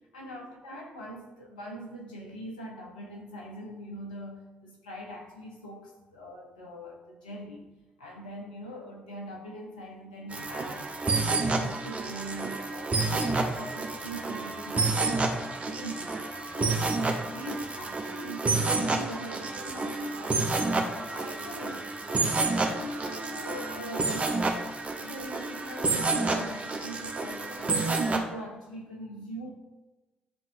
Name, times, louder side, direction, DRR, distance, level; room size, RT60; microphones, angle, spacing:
voice 1, 0.1-7.6 8.0-10.9 11.2-16.2 16.5-16.9 17.3-20.4 20.9-24.4 25.0-29.5, right 1 dB, 80° left, -1 dB, 1.0 m, -42 dB
sound 1, 10.3-28.2, right 3 dB, 30° right, 1.0 m, -29 dB
10.5 x 3.8 x 2.7 m, 1.2 s
figure-of-eight pair, 45°, 4 cm